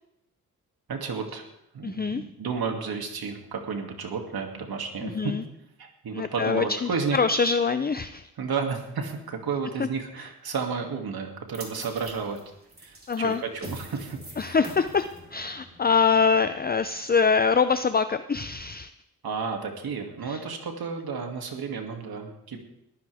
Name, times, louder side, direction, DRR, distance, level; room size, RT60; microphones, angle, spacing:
voice 1, 0.9-1.4 1.7-5.3 5.8-7.2 8.4-12.4 12.8-14.6 19.2-22.6, right 5 dB, 70° right, 3 dB, 2.6 m, -32 dB
voice 2, 1.8-2.2 5.0-5.4 6.1-8.3 9.8-9.9 10.2-10.3 13.1-13.4 14.4-18.9 20.3-20.4, left 5 dB, 25° left, 11 dB, 0.6 m, -24 dB
sound 1, 11.5-17.8, right 1 dB, 25° right, 4.2 m, -45 dB
21.0 x 14.5 x 3.6 m, 0.81 s
cardioid pair, 80°, 38 cm